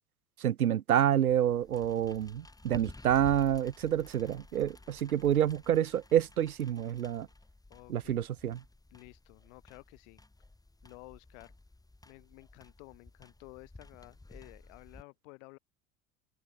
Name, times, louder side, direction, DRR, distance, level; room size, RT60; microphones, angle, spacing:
voice 1, 0.4-7.3 7.9-8.6, right 10 dB, 75° right, 1.0 m, -28 dB
sound 1, 1.3-15.0, left 2 dB, 10° left, 4.1 m, -53 dB
voice 2, 7.7-8.2 8.9-10.2 10.8-11.5 12.0-15.6, left 28 dB, 55° left, 2.8 m, -53 dB
figure-of-eight pair, 70°, 44 cm